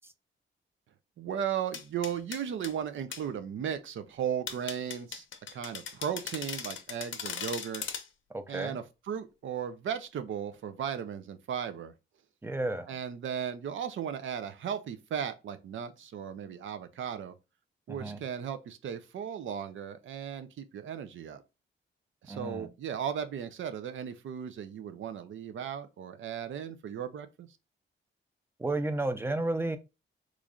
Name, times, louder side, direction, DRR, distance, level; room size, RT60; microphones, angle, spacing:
voice 1, 1.2-5.2 5.5-7.8 8.5-11.9 12.9-17.3 17.9-21.4 22.2-27.5, right 8 dB, 70° right, 0.6 m, -36 dB
sound 1, 1.7-2.7 3.1-3.2 4.5-8.1, left 7 dB, 70° left, 0.7 m, -39 dB
voice 2, 8.3-8.8 12.4-13.0 17.9-18.2 22.3-22.7 28.6-29.8, right 2 dB, 10° right, 0.5 m, -32 dB
3.1 x 2.5 x 3.6 m
cardioid pair, 95°, 21 cm